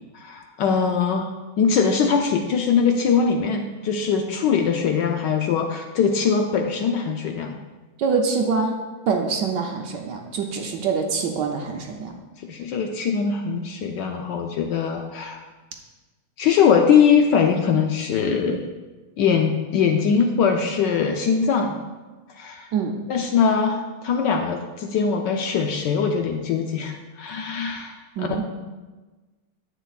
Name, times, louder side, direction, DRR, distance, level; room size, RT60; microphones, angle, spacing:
voice 1, 0.1-1.3 1.6-7.6 12.4-15.4 16.4-18.6 19.2-21.8 22.4-22.7 23.1-28.4, left 6 dB, 75° left, 3 dB, 1.1 m, -21 dB
voice 2, 8.0-8.8 9.1-12.1 22.7-23.0 28.2-28.4, right 5 dB, 70° right, 3 dB, 1.2 m, -25 dB
9.9 x 8.0 x 2.4 m, 1.2 s
omnidirectional pair, 2.3 m